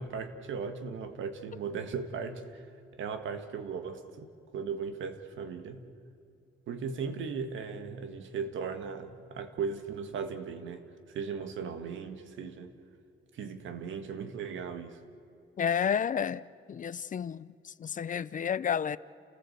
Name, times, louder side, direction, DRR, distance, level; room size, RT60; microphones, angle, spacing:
voice 1, 0.0-2.7 2.9-5.8 6.7-12.7 13.3-15.0, right 5 dB, 75° right, 8 dB, 1.9 m, -37 dB
voice 2, 15.6-16.4 16.7-19.0, left 7 dB, 40° left, 17 dB, 0.6 m, -31 dB
29.5 x 14.5 x 8.1 m, 2.5 s
cardioid pair, 90°, 20 cm